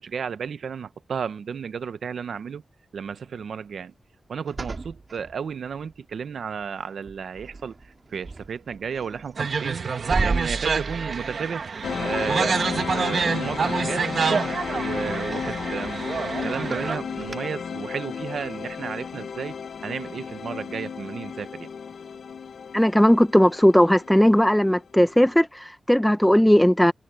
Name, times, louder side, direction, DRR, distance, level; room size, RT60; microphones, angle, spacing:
voice 1, 0.0-2.6 2.9-3.9 4.3-7.8 8.1-9.8 10.2-14.0 14.7-16.1 16.4-19.6 19.8-21.7, right 6 dB, 80° right, 1.0 m, -33 dB
sound 1, 4.5-6.0 6.5-6.8 7.1-17.4, right 3 dB, 35° right, 3.7 m, -36 dB
sound 2, 9.4-17.0, right 5 dB, 65° right, 1.3 m, -27 dB
sound 3, 11.8-24.8, left 6 dB, 80° left, 1.0 m, -33 dB
voice 2, 22.7-26.9, equal, 5° left, 0.9 m, -18 dB
wide cardioid pair, 100°, 0 cm